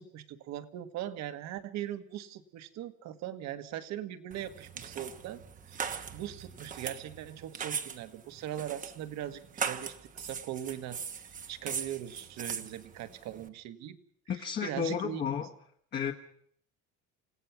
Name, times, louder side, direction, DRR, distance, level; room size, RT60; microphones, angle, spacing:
voice 1, 0.0-14.0 14.4-15.5, right 11 dB, 60° right, 10 dB, 1.8 m, -40 dB
down stairs with slippers, 4.3-13.5, right 6 dB, 25° right, 1.1 m, -40 dB
voice 2, 14.3-15.5 15.9-16.1, left 7 dB, 30° left, 2 dB, 1.4 m, -32 dB
28.5 x 17.0 x 6.0 m, 0.65 s
cardioid pair, 165°, 32 cm